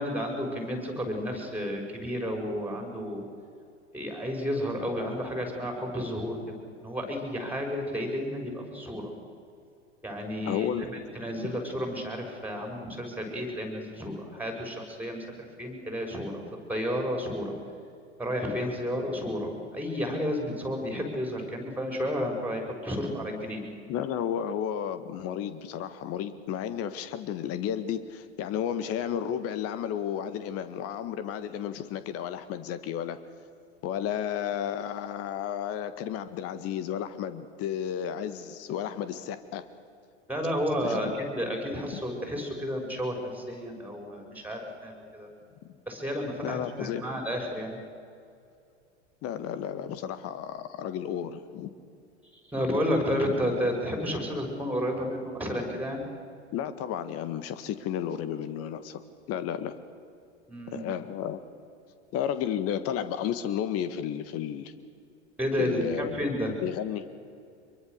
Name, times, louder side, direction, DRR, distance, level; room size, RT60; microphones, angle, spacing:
voice 1, 0.0-3.2 3.9-6.5 6.8-9.1 10.0-16.4 16.7-17.5 18.2-23.6 40.3-45.3 45.9-47.8 52.4-56.0 60.5-60.9 65.4-66.5, equal, 5° right, 2 dB, 5.9 m, -31 dB
voice 2, 10.5-10.9 11.4-11.6 23.9-33.2 33.8-39.6 40.8-41.2 41.8-42.0 46.4-47.0 49.2-51.7 56.5-59.0 59.3-59.7 60.7-61.4 62.1-64.7 65.6-66.2 66.6-67.0, left 9 dB, 40° left, 12 dB, 1.7 m, -32 dB
25.0 x 23.0 x 6.7 m, 2.4 s
figure-of-eight pair, 85°, 35 cm